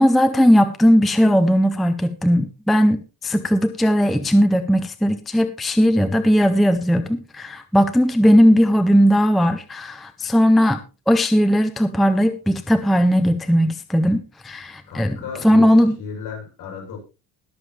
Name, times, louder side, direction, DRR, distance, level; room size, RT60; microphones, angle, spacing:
voice 1, 0.0-10.8 11.1-15.2 15.4-15.9, equal, ahead, 8 dB, 0.5 m, -17 dB
voice 2, 14.9-15.7 16.0-17.0, left 5 dB, 55° left, -1 dB, 7.5 m, -34 dB
21.0 x 7.2 x 3.2 m, 0.29 s
cardioid pair, 175°, 38 cm